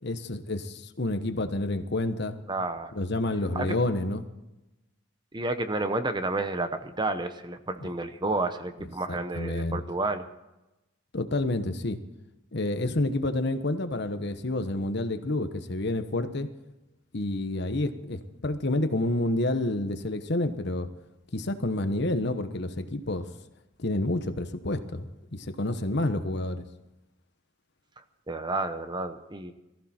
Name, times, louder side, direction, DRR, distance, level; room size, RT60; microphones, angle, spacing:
voice 1, 0.0-2.3 2.9-4.2 7.8-7.9 9.1-9.8 11.1-12.0 12.5-16.5 17.1-20.9 21.3-23.3 23.8-26.6, left 2 dB, 55° left, 9 dB, 1.2 m, -29 dB
voice 2, 2.5-2.9 3.5-3.8 5.3-10.3 28.3-29.5, right 2 dB, 20° right, 9 dB, 0.9 m, -30 dB
19.0 x 14.5 x 4.4 m, 0.97 s
head